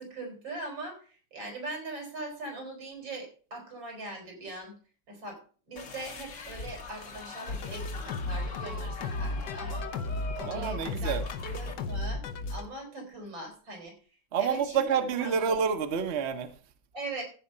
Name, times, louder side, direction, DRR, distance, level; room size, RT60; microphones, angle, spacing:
voice 1, 0.0-4.7 5.1-5.4 5.7-9.9 10.3-11.2 11.4-12.2 12.5-13.9 14.4-14.9 15.2-15.5 16.9-17.2, right 2 dB, 85° right, 4.5 m, -41 dB
sound 1, 5.8-11.7, left 4 dB, 45° left, 1.4 m, -43 dB
sound 2, 7.5-12.6, left 2 dB, 65° left, 1.3 m, -34 dB
voice 2, 10.4-11.2 14.3-16.5, right 6 dB, 45° right, 1.0 m, -28 dB
14.5 x 4.9 x 5.4 m
omnidirectional pair, 2.0 m